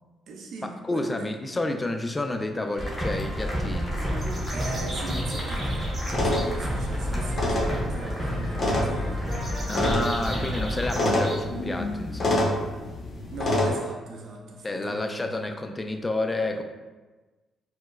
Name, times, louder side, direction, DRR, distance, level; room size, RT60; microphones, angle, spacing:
voice 1, 0.3-1.3 4.5-9.3 13.3-15.3, right 2 dB, 70° right, 0 dB, 0.5 m, -39 dB
voice 2, 0.8-4.0 9.7-12.5 14.6-16.6, left 2 dB, 20° left, 5 dB, 0.3 m, -30 dB
sound 1, 2.8-10.9, equal, ahead, 0.8 m, -29 dB
sound 2, 4.2-6.4 9.3-11.4, right 1 dB, 40° right, 1.0 m, -39 dB
sound 3, 6.1-13.7, left 1 dB, 45° left, 0.7 m, -28 dB
4.4 x 2.0 x 2.2 m, 1.2 s
cardioid pair, 90°, 0 cm